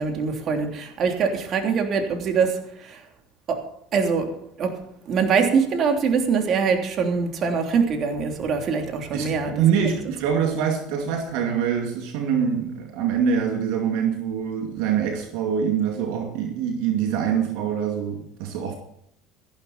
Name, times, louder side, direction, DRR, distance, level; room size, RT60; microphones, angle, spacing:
voice 1, 0.0-3.0 3.5-3.7 3.9-4.3 4.6-4.8 5.1-9.6, right 5 dB, 50° right, 4 dB, 3.2 m, -23 dB
voice 2, 9.1-18.7, right 7 dB, 75° right, 3 dB, 2.3 m, -24 dB
14.5 x 12.5 x 4.3 m, 0.75 s
supercardioid pair, 100°, 0 cm